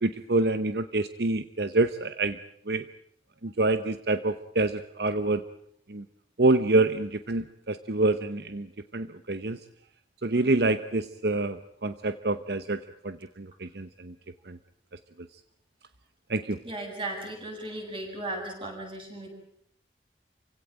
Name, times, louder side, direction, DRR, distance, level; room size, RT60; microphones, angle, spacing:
voice 1, 0.0-2.4 2.7-2.8 3.4-5.4 5.9-6.0 6.4-8.7 8.9-9.6 10.2-12.8 13.0-14.1 14.5-14.6 16.3-16.6, right 2 dB, 65° right, 11 dB, 0.9 m, -26 dB
voice 2, 16.6-19.3, right 1 dB, 30° right, 1 dB, 7.8 m, -36 dB
28.0 x 17.0 x 8.9 m, 0.70 s
head